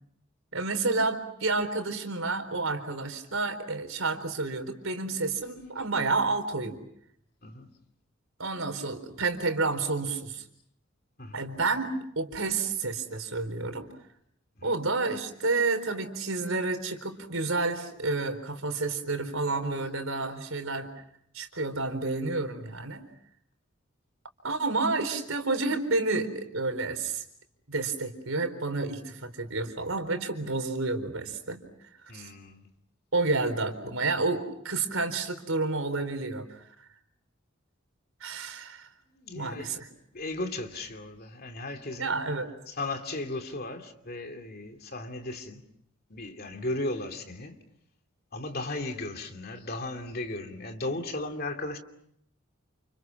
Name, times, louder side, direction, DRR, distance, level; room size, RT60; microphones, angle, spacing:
voice 1, 0.5-6.8 8.4-10.4 11.3-13.9 14.6-20.9 21.3-23.0 24.4-27.2 27.7-31.6 32.1-32.3 33.1-36.5 38.2-38.9 39.3-39.9 42.0-42.5, right 3 dB, 80° right, 4.3 m, -30 dB
voice 2, 32.1-32.7 39.1-39.8 40.1-42.1 42.7-45.6 46.1-47.6 48.3-51.8, left 2 dB, 45° left, 2.8 m, -36 dB
30.0 x 29.5 x 6.1 m
head